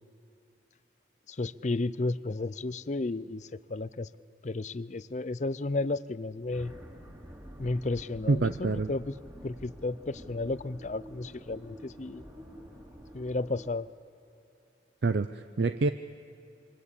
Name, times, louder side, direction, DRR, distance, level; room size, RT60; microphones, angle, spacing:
voice 1, 1.3-4.1 4.4-6.7 7.6-9.1 9.4-12.2 13.1-13.9, left 2 dB, 40° left, 17 dB, 0.5 m, -33 dB
sound 1, 6.5-13.7, equal, 15° right, 3.0 m, -48 dB
voice 2, 8.3-8.9 15.0-15.9, right 3 dB, 65° right, 10 dB, 0.5 m, -27 dB
26.5 x 24.0 x 8.4 m, 2.8 s
head